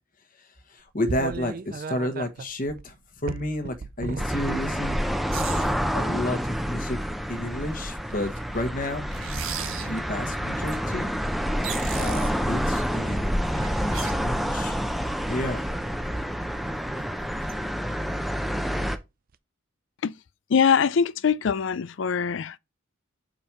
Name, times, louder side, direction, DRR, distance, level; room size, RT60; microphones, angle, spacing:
voice 1, 0.7-2.9 3.2-5.0 5.6-5.7 5.9-7.0 7.3-9.1 9.9-11.1 11.9-13.3 13.8-14.8 15.3-15.6, left 1 dB, 40° left, 1.3 m, -31 dB
sound 1, 1.1-5.2 5.9-6.2 8.0-8.4 10.1-10.2 10.7-11.1 11.6-11.8 13.3-13.6 15.3-15.5 17.0-17.1 18.6-18.7 19.3-19.4, right 4 dB, 45° right, 0.4 m, -36 dB
sound 2, 4.2-19.0, equal, ahead, 0.6 m, -28 dB
sound 3, 5.3-5.7 6.5-6.6 7.5-7.6 8.0-10.0 10.6-10.8 11.2-11.3 11.5-12.8 13.4-14.6 15.0-15.1 15.4-15.5 16.4-16.5 16.7-16.8 17.1-17.5 17.9-18.4 18.6-18.7, right 7 dB, 75° right, 1.2 m, -37 dB
voice 2, 20.5-22.6, left 6 dB, 60° left, 0.4 m, -23 dB
5.0 x 4.5 x 5.8 m
head